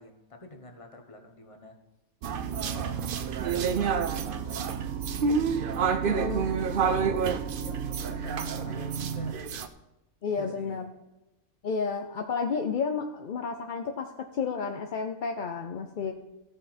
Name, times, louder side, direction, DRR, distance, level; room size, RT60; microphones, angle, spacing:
voice 1, 0.0-1.7 2.5-3.2 3.5-5.3 5.9-9.6 10.4-10.8 16.0-16.1, left 2 dB, 25° left, 3 dB, 1.2 m, -48 dB
sound 1, 2.2-9.7, right 6 dB, 55° right, 0.7 m, -29 dB
sound 2, 2.2-9.3, right 8 dB, 85° right, 1.3 m, -34 dB
voice 2, 6.0-6.5 10.2-10.8 11.6-16.1, left 5 dB, 50° left, 5 dB, 0.6 m, -31 dB
15.5 x 6.4 x 4.3 m, 0.99 s
omnidirectional pair, 1.4 m